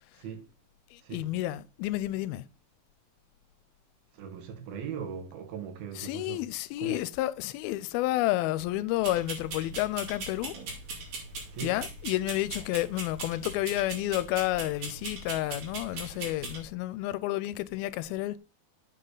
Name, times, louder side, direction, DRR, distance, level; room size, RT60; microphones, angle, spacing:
voice 1, 0.2-0.5 1.0-1.3 4.1-6.4 6.8-7.0 11.5-11.8, right 7 dB, 80° right, 3.3 m, -39 dB
voice 2, 0.9-2.5 6.0-10.6 11.6-18.4, left 16 dB, 85° left, 2.4 m, -30 dB
sound 1, 9.0-16.6, right 3 dB, 60° right, 4.5 m, -40 dB
7.8 x 6.7 x 3.9 m
omnidirectional pair, 4.3 m